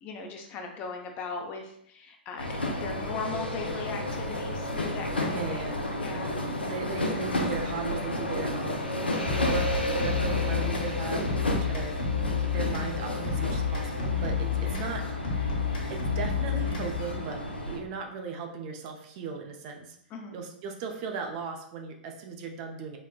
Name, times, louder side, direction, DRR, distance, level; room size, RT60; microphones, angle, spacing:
voice 1, 0.0-5.7 6.0-6.6 20.1-20.4, left 4 dB, 35° left, 3 dB, 0.5 m, -38 dB
sound 1, 2.4-17.8, left 1 dB, 85° left, 0.5 m, -32 dB
voice 2, 5.2-5.8 6.6-9.0 9.3-12.0 12.4-15.0 15.9-20.0 20.3-23.0, right 5 dB, 40° right, 3 dB, 0.4 m, -37 dB
sound 2, 9.2-17.2, left 6 dB, 60° left, 0.8 m, -30 dB
4.1 x 2.1 x 2.3 m, 0.69 s
figure-of-eight pair, 100°, 5 cm